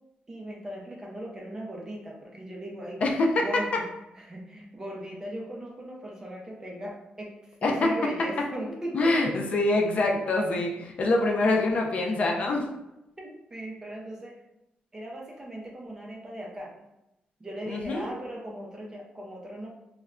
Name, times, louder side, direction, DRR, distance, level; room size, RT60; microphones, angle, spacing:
voice 1, 0.3-3.0 3.4-3.9 4.2-9.4 13.2-14.4 14.9-16.7 17.4-19.7, right 1 dB, 15° right, -1 dB, 0.4 m, -38 dB
voice 2, 3.0-3.4 7.6-7.9 8.9-12.7 17.7-18.1, left 2 dB, 40° left, 1 dB, 0.4 m, -25 dB
2.2 x 2.1 x 3.5 m, 0.90 s
wide cardioid pair, 175°, 3 cm